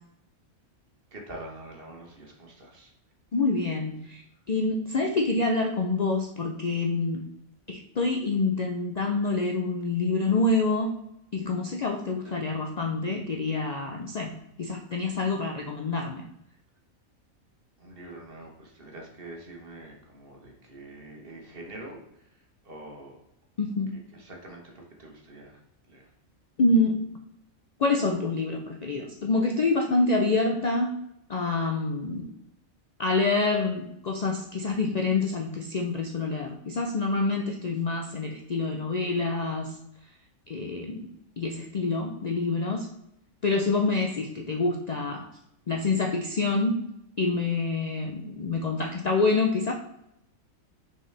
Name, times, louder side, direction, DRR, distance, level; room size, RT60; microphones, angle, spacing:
voice 1, 1.1-2.9 17.8-22.0 22.6-23.2 24.1-25.6 25.9-26.1, right 1 dB, 45° right, 0 dB, 1.4 m, -45 dB
voice 2, 3.3-7.2 7.7-11.0 11.3-16.3 23.6-24.0 26.6-27.1 27.8-31.0 31.3-32.3 33.0-39.8 40.5-41.1 41.4-42.9 43.4-45.3 45.7-46.9 47.2-49.7, left 3 dB, 80° left, 2 dB, 0.3 m, -27 dB
6.1 x 4.6 x 3.3 m, 0.81 s
omnidirectional pair, 1.4 m